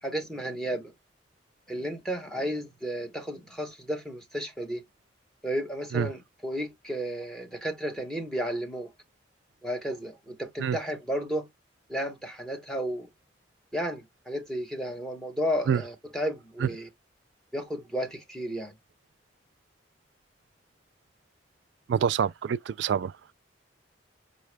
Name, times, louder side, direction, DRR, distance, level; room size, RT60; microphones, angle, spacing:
voice 1, 0.0-0.9 1.7-4.8 5.4-8.9 9.6-11.5 11.9-13.1 13.7-16.9 17.5-18.8, equal, 5° left, 1.0 m, -33 dB
voice 2, 21.9-23.1, right 7 dB, 75° right, 0.3 m, -26 dB
5.1 x 2.2 x 3.3 m
head